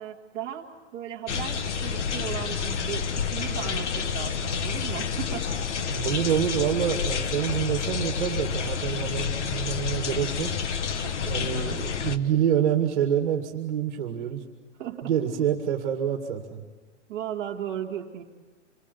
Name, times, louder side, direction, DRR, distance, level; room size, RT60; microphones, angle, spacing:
voice 1, 0.0-5.5 9.0-9.1 11.0-11.8 14.8-15.1 17.1-18.2, right 10 dB, 20° right, -2 dB, 2.0 m, -36 dB
sound 1, 1.3-12.2, left 6 dB, 70° left, 1.4 m, -29 dB
voice 2, 5.9-10.5 11.2-14.4 15.0-16.7, right 9 dB, 45° right, 3 dB, 2.2 m, -27 dB
27.5 x 21.5 x 8.4 m, 1.3 s
hypercardioid pair, 180°, 37 cm